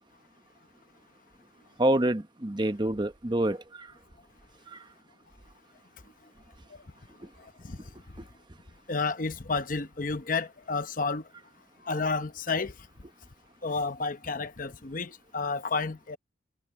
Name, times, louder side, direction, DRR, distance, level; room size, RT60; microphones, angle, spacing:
voice 1, 1.8-3.9 4.7-4.8, right 1 dB, 20° right, 0.9 m, -27 dB
voice 2, 7.2-8.2 8.9-11.3 11.8-12.9 13.6-16.2, left 4 dB, 40° left, 0.8 m, -32 dB
head